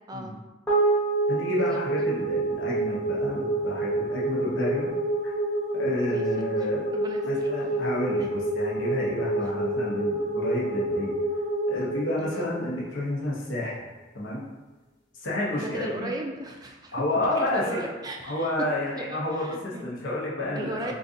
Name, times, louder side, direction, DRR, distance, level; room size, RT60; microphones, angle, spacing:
sound 1, 0.7-13.2, right 2 dB, 15° left, 0.8 m, -27 dB
voice 1, 1.3-4.9 5.2-5.3 5.7-6.8 7.2-11.1 11.7-13.8 14.1-14.4 15.1-16.1 16.9-17.9 18.2-20.9, left 1 dB, 85° left, -5 dB, 0.9 m, -30 dB
voice 2, 6.6-7.5 8.2-8.3 12.2-12.3 15.5-18.5 19.0-20.0 20.5-20.9, right 1 dB, 20° right, 1 dB, 0.3 m, -37 dB
3.8 x 2.5 x 2.6 m, 1.2 s
head